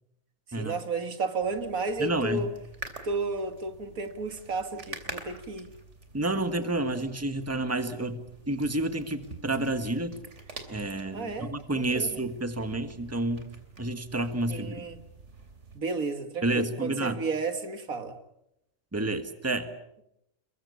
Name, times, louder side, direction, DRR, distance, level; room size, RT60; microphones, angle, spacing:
voice 1, 0.5-2.5 3.0-5.7 11.1-12.2 14.5-15.0 15.7-18.2, right 3 dB, 85° right, 2.3 m, -32 dB
sound 1, 1.4-15.8, right 3 dB, 60° right, 3.4 m, -47 dB
voice 2, 2.0-2.5 6.1-10.2 10.7-13.5 13.8-14.9 16.4-17.2 18.9-19.7, right 2 dB, 10° right, 1.6 m, -30 dB
29.5 x 22.5 x 7.1 m
omnidirectional pair, 1.4 m